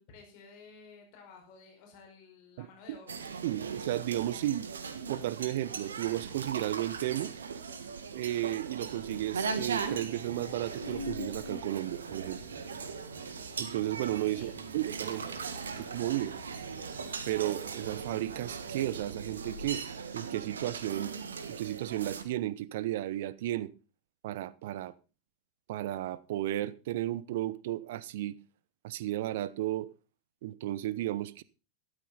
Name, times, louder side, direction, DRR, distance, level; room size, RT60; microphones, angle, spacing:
voice 1, 0.0-3.2 14.3-14.6 14.9-15.5, left 4 dB, 45° left, 5.2 m, -53 dB
sound 1, 3.1-22.2, right 5 dB, 70° right, 1.5 m, -39 dB
voice 2, 3.4-4.7 5.1-7.3 8.1-12.4 13.6-15.2 15.8-16.3 17.3-19.8 20.1-21.1 21.5-23.7 24.2-24.9 25.7-28.4 28.8-29.9 30.4-31.4, right 14 dB, 55° right, 0.8 m, -33 dB
sound 2, 8.8-19.7, left 2 dB, 85° left, 4.2 m, -48 dB
13.0 x 12.5 x 4.0 m
figure-of-eight pair, 90°, 0 cm